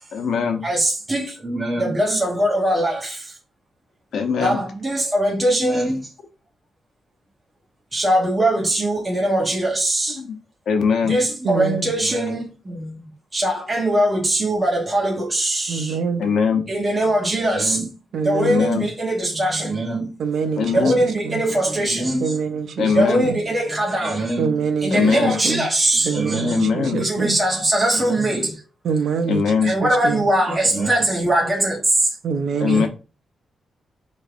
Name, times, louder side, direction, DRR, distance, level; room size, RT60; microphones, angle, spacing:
voice 1, 0.1-0.6 4.1-4.6 10.1-10.4 10.7-11.2 16.2-16.7 18.4-18.9 20.6-21.0 22.8-23.3 24.9-25.4 26.5-27.0 29.3-29.7 32.6-32.9, left 6 dB, 90° left, 0.8 m, -21 dB
voice 2, 0.6-3.3 4.4-6.1 7.9-10.2 11.0-13.0 13.3-16.0 16.7-20.1 20.6-22.5 22.8-28.6 29.6-32.1 32.7-32.9, right 1 dB, 15° right, 1.0 m, -21 dB
voice 3, 11.4-11.9 15.7-16.3 18.1-18.6 20.2-20.9 21.2-21.4 22.2-22.9 23.2-23.4 24.4-25.7 26.0-27.4 28.8-30.2 32.2-32.9, right 5 dB, 65° right, 0.4 m, -25 dB
4.5 x 3.2 x 2.5 m
wide cardioid pair, 170°, 0 cm